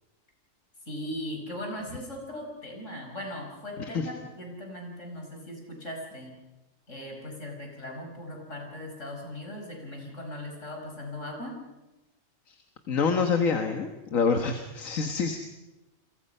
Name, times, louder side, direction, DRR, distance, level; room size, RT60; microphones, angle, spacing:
voice 1, 0.9-6.4 6.9-11.6, left 1 dB, 65° left, 2 dB, 5.6 m, -39 dB
voice 2, 12.9-15.4, left 5 dB, 85° left, 5 dB, 1.8 m, -26 dB
29.5 x 23.0 x 5.5 m, 1.0 s
omnidirectional pair, 1.3 m